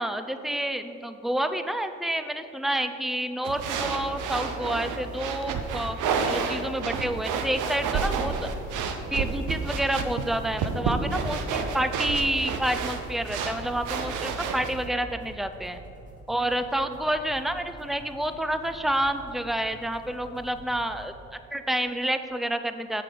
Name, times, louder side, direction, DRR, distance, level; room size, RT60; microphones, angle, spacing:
voice 1, 0.0-6.0 6.3-8.5 9.1-15.8 16.3-23.0, right 1 dB, ahead, 9 dB, 0.4 m, -29 dB
sound 1, 3.4-14.9, right 5 dB, 85° right, 0.7 m, -30 dB
sound 2, 8.3-21.1, right 2 dB, 25° right, 1.9 m, -48 dB
7.3 x 5.9 x 5.3 m, 2.6 s
cardioid pair, 90°, 30 cm